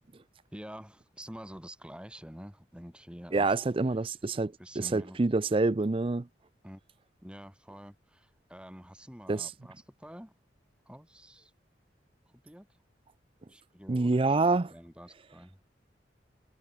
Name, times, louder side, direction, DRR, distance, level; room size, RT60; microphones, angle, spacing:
voice 1, 0.5-3.5 4.6-5.2 6.6-6.8 7.2-10.3 10.8-11.5 12.3-12.7 13.5-15.6, equal, 5° right, 4.8 m, -48 dB
voice 2, 3.3-6.3 9.3-9.5 13.9-14.7, right 3 dB, 30° right, 0.5 m, -27 dB
head